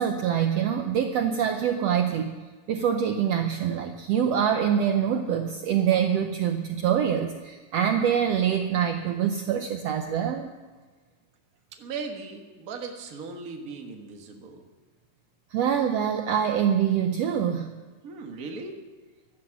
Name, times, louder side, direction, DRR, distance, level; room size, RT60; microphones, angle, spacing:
voice 1, 0.0-2.4 2.7-10.5 15.5-17.7, right 8 dB, 90° right, 5 dB, 1.4 m, -25 dB
voice 2, 11.7-14.6 18.0-18.8, right 4 dB, 45° right, 3 dB, 1.2 m, -38 dB
15.0 x 11.5 x 5.9 m, 1.4 s
omnidirectional pair, 3.9 m